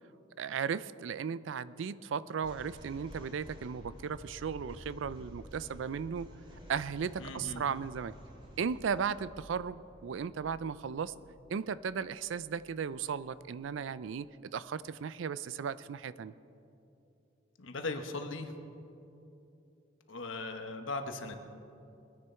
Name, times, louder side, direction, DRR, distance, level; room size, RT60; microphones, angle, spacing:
voice 1, 0.4-6.3 6.7-8.1 8.6-11.1 11.5-14.3 14.5-16.3, right 6 dB, 75° right, 17 dB, 0.4 m, -36 dB
sound 1, 2.4-13.7, equal, 25° right, 2.5 m, -52 dB
voice 2, 7.2-7.6 17.6-18.5 20.1-21.4, left 3 dB, 85° left, 7 dB, 1.1 m, -38 dB
21.0 x 9.9 x 4.5 m, 2.8 s
head